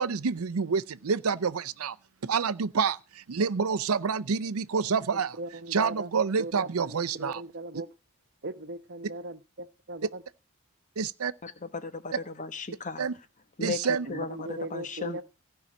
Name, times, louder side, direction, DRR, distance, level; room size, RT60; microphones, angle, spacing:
voice 1, 0.0-2.0 2.2-7.4 7.7-7.8 11.0-11.3 13.0-13.1 13.6-14.1, right 5 dB, 85° right, 0.6 m, -28 dB
voice 2, 5.4-6.1 6.4-7.9 8.4-10.1 14.1-15.2, right 2 dB, 55° right, 1.0 m, -38 dB
voice 3, 11.4-13.1 13.6-13.8 14.1-15.2, left 4 dB, 35° left, 1.1 m, -36 dB
15.5 x 5.6 x 8.5 m
head